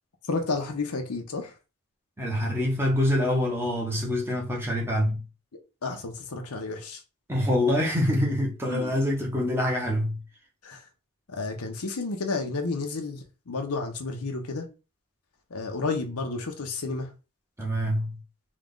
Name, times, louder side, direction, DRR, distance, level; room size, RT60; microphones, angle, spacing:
voice 1, 0.3-1.5 5.8-7.0 8.7-9.0 10.6-10.8 11.3-14.7 15.5-17.1, left 3 dB, 90° left, 0.8 m, -31 dB
voice 2, 2.2-5.2 7.3-10.2 17.6-18.2, left 1 dB, 10° right, 1.0 m, -25 dB
3.6 x 2.4 x 3.6 m
head